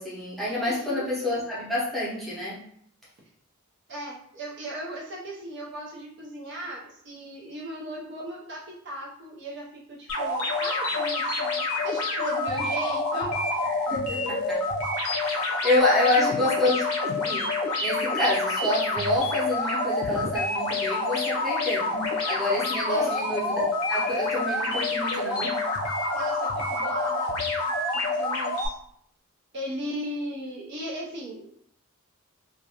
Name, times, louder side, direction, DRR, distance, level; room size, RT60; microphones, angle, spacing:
voice 1, 0.0-2.6 10.8-10.9 13.9-14.6 15.2-17.5 17.8-21.9 22.3-25.6, left 1 dB, ahead, -9 dB, 0.7 m, -27 dB
voice 2, 0.7-1.1 3.9-13.3 15.5-15.6 16.0-16.7 22.9-23.2 26.1-27.3 28.1-28.7 29.5-31.5, right 1 dB, 50° right, -4 dB, 0.6 m, -37 dB
sound 1, 10.1-28.7, left 2 dB, 80° left, 0.5 m, -27 dB
2.4 x 2.2 x 2.8 m, 0.68 s
head